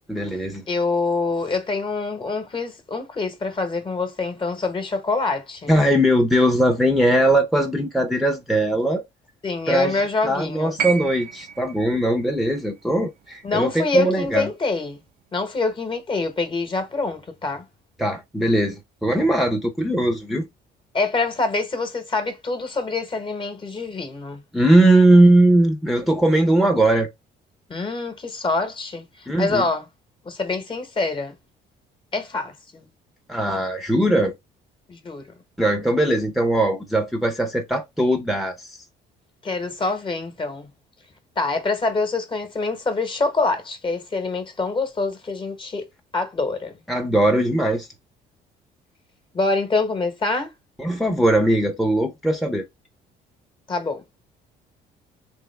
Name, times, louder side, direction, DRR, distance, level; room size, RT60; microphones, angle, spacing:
voice 1, 0.1-0.6 5.7-9.0 9.7-14.5 18.0-20.5 24.5-27.1 29.3-29.6 33.3-34.3 35.6-38.7 46.9-47.9 50.8-52.6, right 1 dB, ahead, 0.8 m, -19 dB
voice 2, 0.7-5.7 9.4-10.7 13.4-15.0 15.3-17.6 20.9-24.4 27.7-29.9 30.2-31.3 32.1-32.9 34.9-35.3 39.4-40.7 41.4-45.9 46.1-46.7 49.3-50.5 53.7-54.0, left 3 dB, 30° left, 1.2 m, -25 dB
sound 1, 10.8-15.0 16.2-16.3, right 7 dB, 60° right, 0.5 m, -34 dB
3.5 x 3.2 x 3.3 m
cardioid pair, 110°, 17 cm